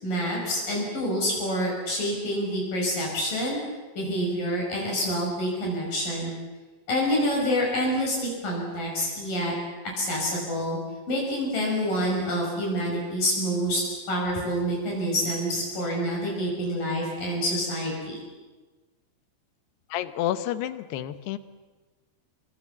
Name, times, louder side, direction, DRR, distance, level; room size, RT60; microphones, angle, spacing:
voice 1, 0.0-3.6 4.0-6.3 6.9-9.5 10.0-10.8 11.1-13.8 14.1-18.2, equal, 55° left, -2 dB, 7.6 m, -27 dB
voice 2, 19.9-21.4, left 12 dB, 90° left, 11 dB, 3.2 m, -29 dB
27.0 x 25.0 x 7.3 m, 1.3 s
omnidirectional pair, 4.6 m